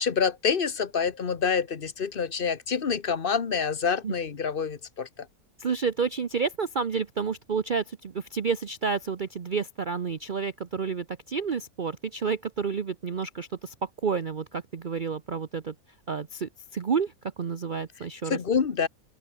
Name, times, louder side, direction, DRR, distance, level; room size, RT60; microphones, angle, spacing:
voice 1, 0.0-5.1 18.3-18.9, left 6 dB, 40° left, 1.3 m, -27 dB
voice 2, 5.6-13.7 14.0-15.7 16.1-18.4, right 5 dB, 40° right, 0.8 m, -30 dB
open air
omnidirectional pair, 1.5 m